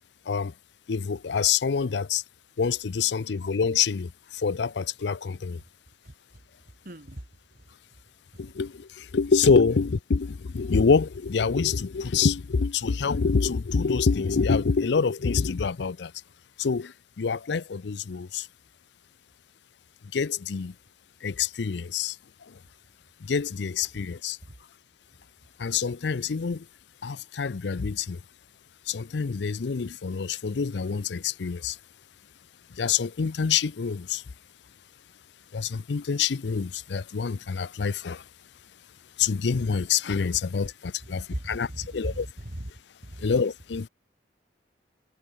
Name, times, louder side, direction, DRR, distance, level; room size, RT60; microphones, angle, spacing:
voice 1, 0.9-2.2 2.6-5.6 8.4-16.1 16.6-18.5 20.1-20.7 21.2-22.2 22.5-22.6 23.2-24.4 25.6-26.7 27.0-28.2 28.9-31.8 32.7-34.2 35.5-38.2 39.2-42.3 43.2-43.9, left 5 dB, 70° left, 0.5 m, -26 dB
voice 2, 6.8-7.2 8.3-8.4 24.4-24.5 41.3-42.7 43.0-43.3, right 1 dB, 50° right, 2.5 m, -37 dB
head